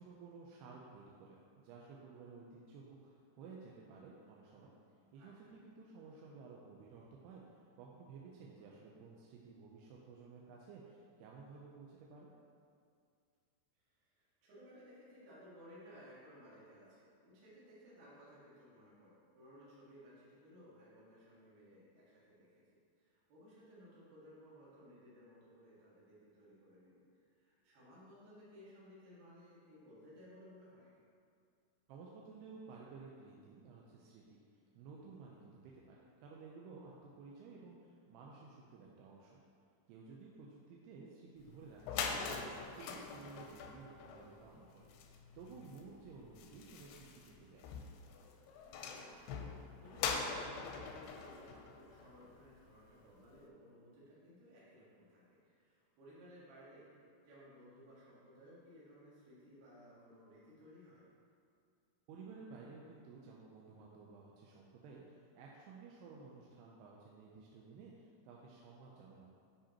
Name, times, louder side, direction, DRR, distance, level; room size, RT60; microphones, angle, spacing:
voice 1, 0.0-4.7 5.1-12.3 31.9-34.4 34.8-39.4 39.9-44.9 45.4-47.7 62.1-69.3, right 4 dB, 85° right, -3 dB, 2.6 m, -54 dB
voice 2, 5.2-5.6 8.7-8.8 13.8-22.6 23.0-30.9 46.1-46.3 48.9-49.3 49.8-61.0, equal, 65° right, -8 dB, 3.6 m, -59 dB
sound 1, 41.5-41.6 41.8-52.6, left 5 dB, 85° left, 2.6 m, -43 dB
9.9 x 5.1 x 2.9 m, 2.3 s
omnidirectional pair, 4.8 m